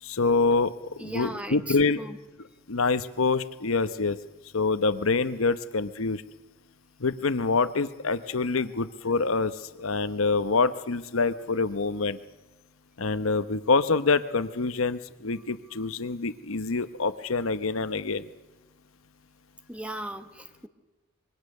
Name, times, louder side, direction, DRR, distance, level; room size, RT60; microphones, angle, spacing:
voice 1, 0.0-2.0 2.7-4.2 4.5-6.2 7.0-12.2 13.0-18.3, left 4 dB, 80° left, 12 dB, 1.0 m, -26 dB
voice 2, 1.0-2.2 19.7-20.7, equal, 5° right, 8 dB, 1.1 m, -37 dB
25.5 x 22.5 x 6.6 m, 1.1 s
head